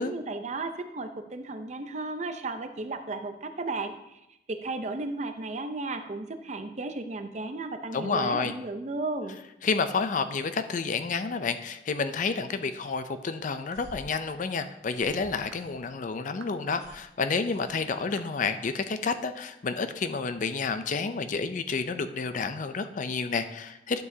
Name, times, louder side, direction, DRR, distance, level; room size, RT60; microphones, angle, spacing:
voice 1, 0.0-4.2 4.5-9.4, right 3 dB, 40° right, 8 dB, 0.6 m, -34 dB
voice 2, 7.9-8.5 9.6-24.0, left 4 dB, 45° left, 10 dB, 0.4 m, -30 dB
sound 1, 13.7-16.1 16.4-18.3, right 1 dB, 20° right, 1.9 m, -51 dB
sound 2, 13.7-13.9 14.6-14.8 15.5-15.7 16.4-16.6 17.3-17.4 18.2-18.4, right 4 dB, 75° right, 0.8 m, -51 dB
11.0 x 7.0 x 2.7 m, 0.86 s
head